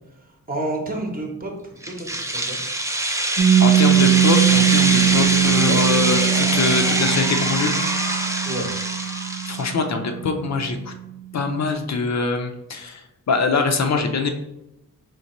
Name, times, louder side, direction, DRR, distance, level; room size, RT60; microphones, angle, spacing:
voice 1, 0.5-2.6 8.4-8.7, right 1 dB, 25° right, 0 dB, 0.8 m, -30 dB
sound 1, 1.8-9.7, right 1 dB, 10° right, 0.4 m, -24 dB
Piano, 3.4-10.7, right 12 dB, 55° right, 0.8 m, -21 dB
voice 2, 3.6-7.7 9.5-10.9 11.3-14.3, left 4 dB, 55° left, 5 dB, 0.5 m, -23 dB
sound 2, 4.5-10.4, left 3 dB, 80° left, 0.8 m, -34 dB
5.1 x 3.2 x 2.9 m, 0.92 s
wide cardioid pair, 165°, 33 cm